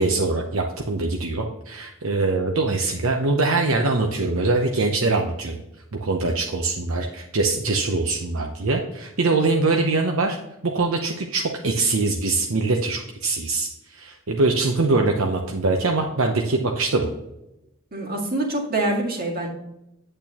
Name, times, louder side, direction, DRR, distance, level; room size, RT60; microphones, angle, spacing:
voice 1, 0.0-5.6 6.0-10.4 10.6-17.1, right 3 dB, 75° right, 3 dB, 0.8 m, -23 dB
voice 2, 17.9-19.5, right 2 dB, 45° right, -1 dB, 2.0 m, -25 dB
8.8 x 8.5 x 2.9 m, 0.91 s
head